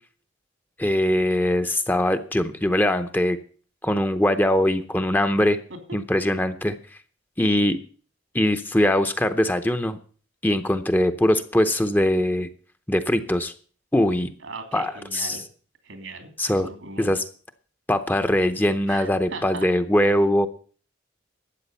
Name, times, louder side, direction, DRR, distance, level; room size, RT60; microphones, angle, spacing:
voice 1, 0.8-3.4 3.8-5.6 5.9-6.8 7.4-7.8 8.3-10.0 10.4-12.5 12.9-13.5 13.9-14.3 14.7-15.4 16.4-16.7 17.0-17.2 17.9-20.5, left 1 dB, 10° left, 9 dB, 0.7 m, -22 dB
voice 2, 14.4-15.4 15.8-17.2 18.9-19.7, right 3 dB, 90° right, 6 dB, 3.0 m, -39 dB
12.5 x 8.4 x 6.9 m, 0.42 s
head